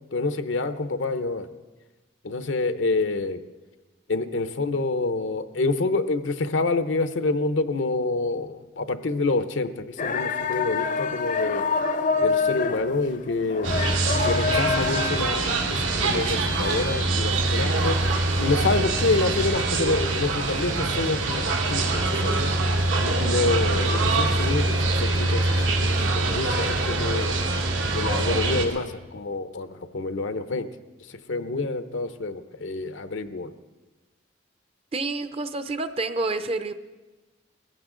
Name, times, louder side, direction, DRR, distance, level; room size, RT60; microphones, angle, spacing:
voice 1, 0.1-1.5 2.2-3.4 4.1-11.6 12.2-13.7 14.2-18.0 18.3-22.4 23.0-27.3 27.9-30.7 31.1-33.5, left 3 dB, 75° left, 10 dB, 0.7 m, -27 dB
sound 1, 10.0-15.2, left 5 dB, 40° left, 0.6 m, -26 dB
sound 2, 13.6-28.6, right 2 dB, 85° right, 2.2 m, -24 dB
voice 2, 34.9-36.7, right 3 dB, 30° right, 10 dB, 0.6 m, -28 dB
20.5 x 15.5 x 3.8 m, 1.2 s
head